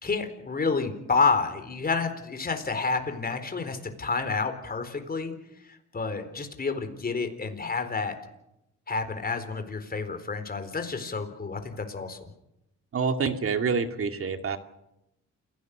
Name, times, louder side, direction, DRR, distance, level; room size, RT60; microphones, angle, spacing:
voice 1, 0.0-5.3 5.9-8.2 8.9-12.3, left 4 dB, 30° left, 8 dB, 4.1 m, -29 dB
voice 2, 12.9-14.6, right 5 dB, 45° right, 7 dB, 2.3 m, -27 dB
28.5 x 16.5 x 6.7 m, 0.86 s
cardioid pair, 90°, 30 cm